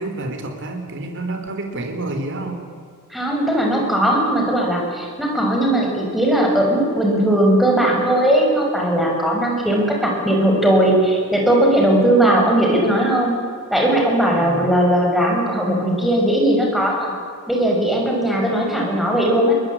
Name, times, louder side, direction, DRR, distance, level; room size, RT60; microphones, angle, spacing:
voice 1, 0.0-2.6 14.3-14.7, right 2 dB, 55° right, 5 dB, 3.7 m, -28 dB
voice 2, 3.1-13.3 13.7-17.1 17.5-19.5, right 1 dB, ahead, -1 dB, 6.1 m, -18 dB
22.5 x 21.0 x 8.7 m, 2.2 s
head